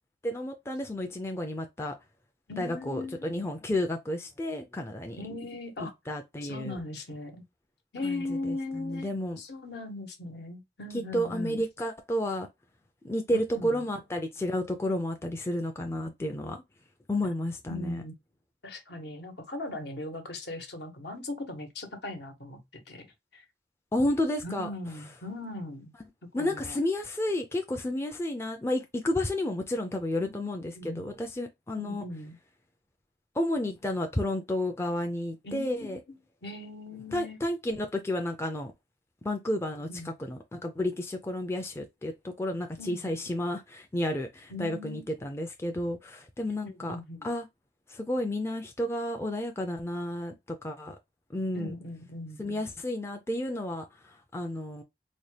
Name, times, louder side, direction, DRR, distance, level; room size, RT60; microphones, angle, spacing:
voice 1, 0.2-1.9 2.6-5.2 6.1-6.8 8.0-9.4 10.9-12.5 13.0-16.6 17.1-18.0 23.9-24.7 26.3-32.0 33.3-36.0 37.1-38.7 39.2-47.0 47.2-47.5 47.9-50.3 50.6-51.0 51.3-51.7 52.4-54.8, left 1 dB, 15° left, 0.4 m, -31 dB
voice 2, 2.5-3.3 5.2-5.9 6.4-7.4 7.9-9.1 9.4-11.6 13.3-13.9 17.7-18.1 18.6-23.0 23.3-23.4 24.4-25.9 26.3-26.8 30.2-31.1 31.8-32.4 35.4-36.0 36.4-37.4 39.9-40.2 42.8-43.1 44.5-45.0 46.6-47.3 51.5-52.4, left 2 dB, 70° left, 1.0 m, -39 dB
4.1 x 2.2 x 3.2 m
head